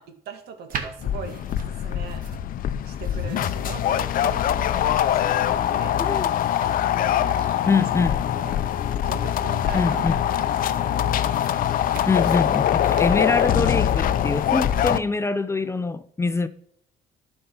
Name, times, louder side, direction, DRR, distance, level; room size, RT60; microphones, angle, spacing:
voice 1, 0.0-2.2 2.8-6.2 7.0-7.9 8.4-8.6 9.0-10.0 10.4-11.0, right 6 dB, 70° right, 2.0 m, -40 dB
sound 1, 0.7-14.0, right 5 dB, 55° right, 1.9 m, -43 dB
sound 2, 1.0-15.0, left 10 dB, 55° left, 0.6 m, -23 dB
voice 2, 7.7-8.2 9.7-10.2 12.1-16.5, left 4 dB, 15° left, 0.6 m, -24 dB
11.0 x 5.4 x 5.9 m
cardioid pair, 110°, 17 cm